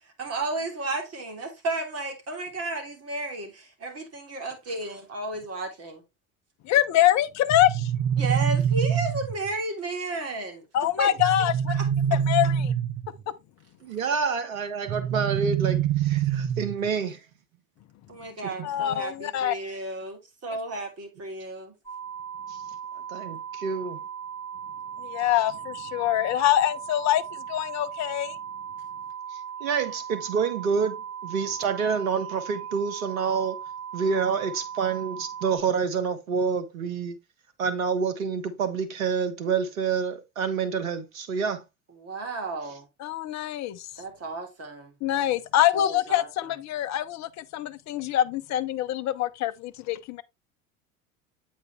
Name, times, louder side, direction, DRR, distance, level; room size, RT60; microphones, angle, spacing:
voice 1, 0.2-6.0 8.2-10.6 11.0-11.1 11.7-11.9 18.1-21.7 42.0-42.9 44.0-44.9 45.7-46.3, right 2 dB, 35° right, 3.0 m, -33 dB
voice 2, 6.6-7.9 10.7-11.7 12.1-12.7 18.6-19.6 25.0-28.4 43.0-43.9 45.0-50.2, left 12 dB, 40° left, 0.8 m, -25 dB
sound 1, 7.5-9.5 11.2-13.2 14.9-16.9, right 9 dB, 55° right, 1.2 m, -25 dB
voice 3, 13.8-17.2 18.4-18.7 22.5-22.6 23.1-24.0 29.6-31.0 31.2-33.6 33.9-37.2 37.6-41.6, right 6 dB, 75° right, 1.4 m, -28 dB
sound 2, 21.9-35.6, right 8 dB, 5° left, 4.4 m, -38 dB
8.2 x 5.2 x 3.3 m
hypercardioid pair, 70°, 41 cm